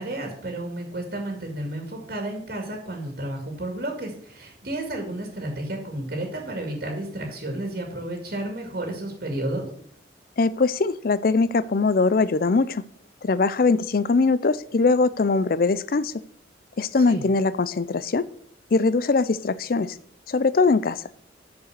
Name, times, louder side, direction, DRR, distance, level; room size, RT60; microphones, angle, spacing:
voice 1, 0.0-9.7 17.1-17.2, right 1 dB, 55° right, 2 dB, 2.3 m, -32 dB
voice 2, 10.4-12.8 13.2-16.1 16.8-18.3 18.7-20.0 20.3-21.0, left 3 dB, 50° left, 17 dB, 0.5 m, -21 dB
7.0 x 6.5 x 7.7 m, 0.62 s
head